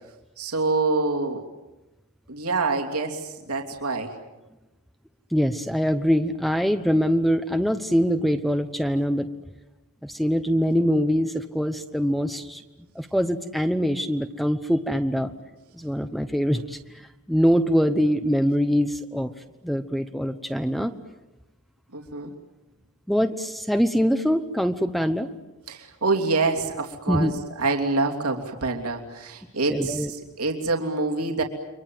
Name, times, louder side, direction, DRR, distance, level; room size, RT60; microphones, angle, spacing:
voice 1, 0.4-1.4 2.3-4.1 21.9-22.3 25.7-31.4, right 3 dB, 85° right, 1 dB, 3.1 m, -26 dB
voice 2, 5.3-9.3 10.0-12.6 12.9-15.3 15.7-16.8 17.3-19.3 19.6-20.9 23.1-25.3 27.1-27.3 29.7-30.1, equal, ahead, 8 dB, 0.9 m, -23 dB
30.0 x 24.5 x 7.8 m, 1.1 s
head